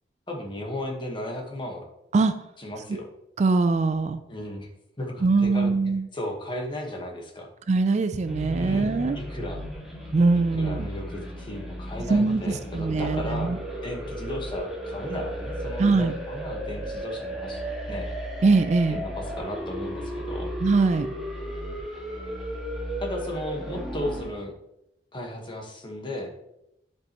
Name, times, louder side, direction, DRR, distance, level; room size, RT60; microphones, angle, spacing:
voice 1, 0.3-1.9 2.6-3.1 4.3-4.7 5.0-5.8 6.1-7.5 8.6-9.6 10.6-13.5 13.8-17.6 17.9-18.1 18.9-20.5 23.0-24.5 25.1-26.3, left 1 dB, 25° left, 1 dB, 1.3 m, -35 dB
voice 2, 3.4-4.2 5.2-6.1 7.7-9.2 10.1-10.9 12.1-13.6 15.8-16.1 18.4-19.0 20.6-21.1, right 3 dB, 40° right, 10 dB, 0.4 m, -22 dB
sound 1, 8.3-24.3, equal, ahead, 1.8 m, -34 dB
10.5 x 5.4 x 3.0 m, 0.84 s
head